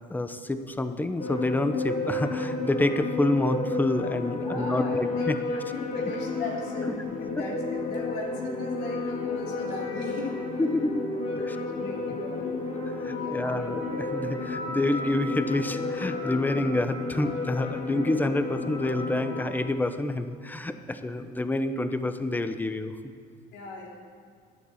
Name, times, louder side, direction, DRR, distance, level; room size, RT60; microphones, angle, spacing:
voice 1, 0.1-5.4 7.2-7.4 10.6-11.1 11.5-11.6 13.0-22.9, left 2 dB, 10° left, 9 dB, 0.8 m, -28 dB
sound 1, 1.2-19.5, left 3 dB, 45° left, 3.1 m, -32 dB
voice 2, 4.3-10.4 11.1-12.6 13.1-13.7 23.5-23.9, left 3 dB, 80° left, -1 dB, 3.1 m, -38 dB
12.0 x 10.5 x 7.1 m, 2.2 s
cardioid pair, 110°, 17 cm